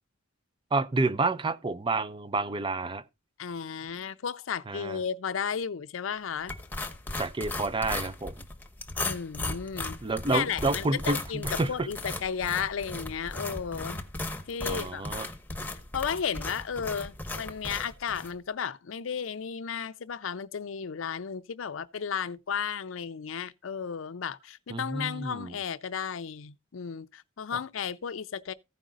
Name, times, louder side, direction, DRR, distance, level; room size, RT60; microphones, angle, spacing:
voice 1, 0.7-3.0 4.7-5.0 7.1-8.5 9.8-11.9 14.7-15.3 24.7-25.6, right 3 dB, 25° right, 0.6 m, -29 dB
voice 2, 3.4-6.5 9.0-10.0 10.3-14.0 14.5-15.0 15.9-28.5, left 7 dB, 90° left, 0.5 m, -34 dB
sound 1, 6.5-18.3, left 2 dB, 10° left, 1.0 m, -37 dB
14.5 x 5.1 x 3.8 m
head